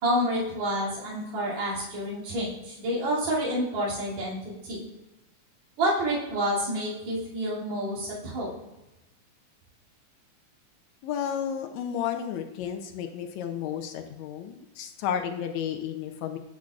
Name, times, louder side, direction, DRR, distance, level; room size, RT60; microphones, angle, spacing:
voice 1, 0.0-4.9 5.8-8.6, equal, 60° right, -8 dB, 3.8 m, -29 dB
voice 2, 11.0-16.4, left 8 dB, 75° left, 5 dB, 1.8 m, -32 dB
10.5 x 6.1 x 2.4 m, 0.99 s
omnidirectional pair, 3.6 m